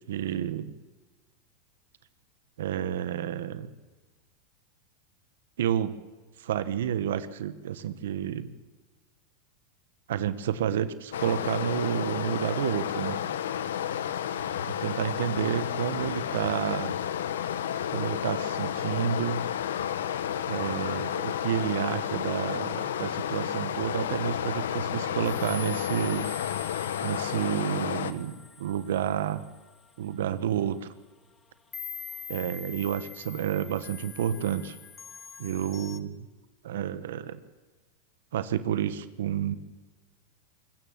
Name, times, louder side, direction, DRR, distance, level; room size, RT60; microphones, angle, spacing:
voice 1, 0.1-0.7 2.6-3.7 5.6-5.9 6.4-8.6 10.1-13.2 14.8-17.0 17.9-19.5 20.5-26.3 27.0-29.4 30.0-30.9 32.3-34.8 35.4-36.1 36.6-37.4 38.3-39.6, right 9 dB, 80° right, 14 dB, 1.1 m, -30 dB
Stream, 11.1-28.1, left 9 dB, 90° left, 1.2 m, -31 dB
sound 1, 25.2-30.3 30.8-31.0 31.7-36.0, left 6 dB, 20° left, 1.1 m, -45 dB
21.5 x 18.5 x 7.3 m, 1.3 s
supercardioid pair, 130°, 0 cm